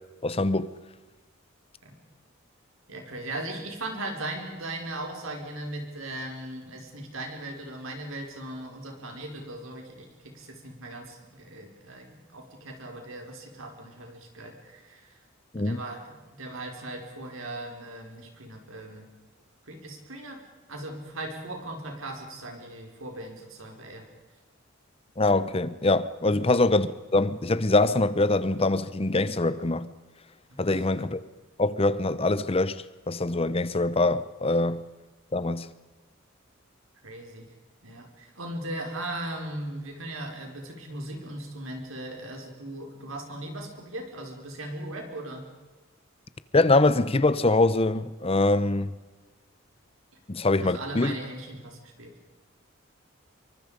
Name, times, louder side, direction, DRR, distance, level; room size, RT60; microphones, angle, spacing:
voice 1, 0.2-0.7 15.5-15.8 25.2-29.9 30.6-31.2 31.6-34.8 35.3-35.7 46.5-48.9 50.3-51.2, left 2 dB, 30° left, 0.8 m, -24 dB
voice 2, 2.9-10.1 10.3-15.1 15.6-19.0 19.7-20.4 20.7-24.0 26.2-26.4 30.7-30.8 37.0-37.5 37.8-45.4 48.5-48.7 50.6-52.1, right 1 dB, 85° right, 5.2 m, -38 dB
26.0 x 23.5 x 5.2 m
head